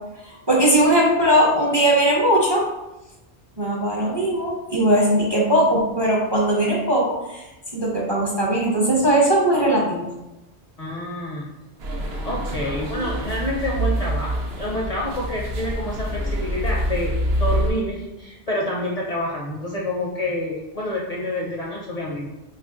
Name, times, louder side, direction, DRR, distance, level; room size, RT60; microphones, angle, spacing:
voice 1, 0.2-2.7 3.6-7.4 7.7-10.1, right 1 dB, 30° right, -4 dB, 0.5 m, -19 dB
voice 2, 10.8-11.5 12.2-22.3, left 1 dB, 50° left, -4 dB, 0.5 m, -28 dB
sound 1, 11.8-17.7, equal, 75° right, 0.9 m, -26 dB
2.8 x 2.5 x 3.5 m, 0.99 s
omnidirectional pair, 1.1 m